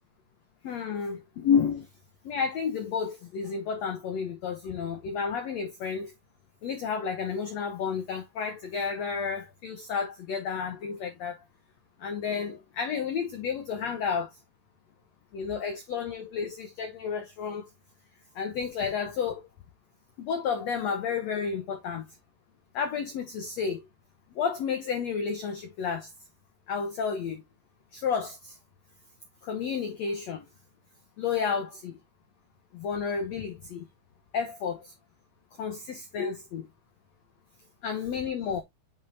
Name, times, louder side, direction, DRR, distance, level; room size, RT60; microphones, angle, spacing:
voice 1, 0.6-1.9 2.2-6.1 6.6-11.4 12.0-14.4 15.3-17.7 18.3-19.5 20.2-22.1 22.7-23.8 24.3-26.1 26.7-27.4 27.9-28.6 29.4-30.5 31.2-32.0 32.7-33.9 34.3-34.9 35.6-36.7 37.8-38.6, left 6 dB, 80° left, 1.5 m, -31 dB
8.2 x 5.4 x 2.7 m
omnidirectional pair, 4.6 m